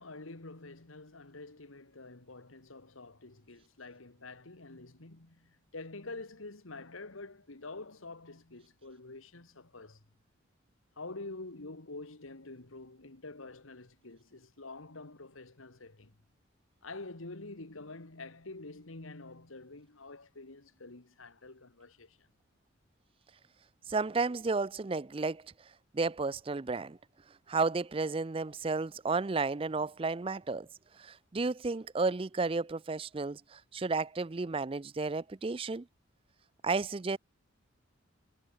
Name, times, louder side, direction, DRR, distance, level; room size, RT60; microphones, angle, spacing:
voice 1, 0.0-10.0 11.0-16.2 16.8-22.3, left 3 dB, 90° left, 2.0 m, -47 dB
voice 2, 23.9-25.5 25.9-27.0 27.5-30.7 31.0-35.9 36.6-37.2, right 3 dB, 25° right, 0.4 m, -32 dB
head